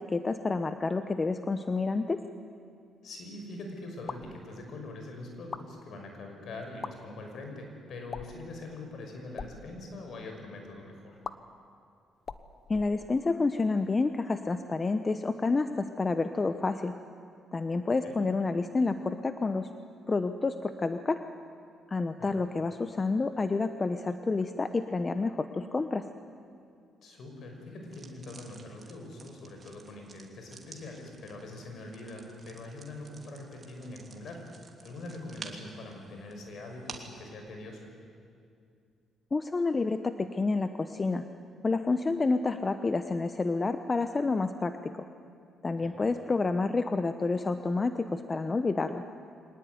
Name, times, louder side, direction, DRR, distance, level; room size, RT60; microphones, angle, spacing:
voice 1, 0.0-2.2 12.7-16.9 17.5-19.7 20.1-21.2 21.9-26.0 39.3-41.2 41.6-45.1 45.6-49.0, left 3 dB, 30° left, 9 dB, 0.9 m, -29 dB
voice 2, 3.0-11.2 18.0-18.2 22.2-22.5 27.0-34.4 34.8-37.9 45.8-46.1, left 2 dB, 65° left, 3 dB, 5.9 m, -43 dB
sound 1, 4.1-4.4 5.4-5.7 6.7-6.9 8.1-8.5 9.2-9.5 11.2-11.3 12.2-13.4, left 5 dB, 45° left, 1.1 m, -41 dB
sound 2, 27.8-37.2, right 4 dB, 35° right, 3.0 m, -51 dB
24.0 x 19.0 x 9.6 m, 2.4 s
cardioid pair, 90°, 0 cm